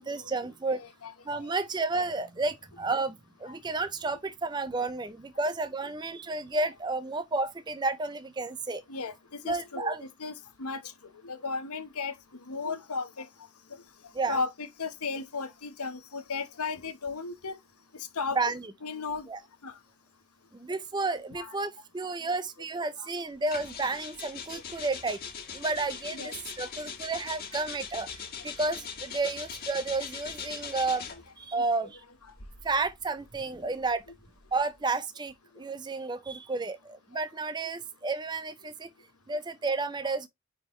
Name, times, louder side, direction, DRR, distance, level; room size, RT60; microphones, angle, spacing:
voice 1, 0.0-0.8 1.2-8.8 9.4-10.0 14.1-14.4 18.4-18.7 19.3-19.4 20.5-25.2 25.5-31.1 31.4-32.0 32.6-34.0 34.5-38.9 39.3-40.3, right 3 dB, 20° right, 0.4 m, -31 dB
voice 2, 0.7-1.1 1.4-1.5 2.0-2.1 3.5-3.6 8.9-9.9 10.2-10.3 10.6-10.9 11.2-12.2 12.5-13.3 13.7-13.8 14.3-17.6 17.9-18.4 18.8-19.3 19.6-19.8 21.3-21.6 22.3-22.4 23.0-23.1 24.5-24.6 26.1-26.3 26.6-26.7, left 4 dB, 85° left, 1.0 m, -35 dB
sound 1, 23.5-31.3 32.2-34.7, left 6 dB, 40° left, 1.5 m, -41 dB
9.4 x 3.5 x 3.0 m
head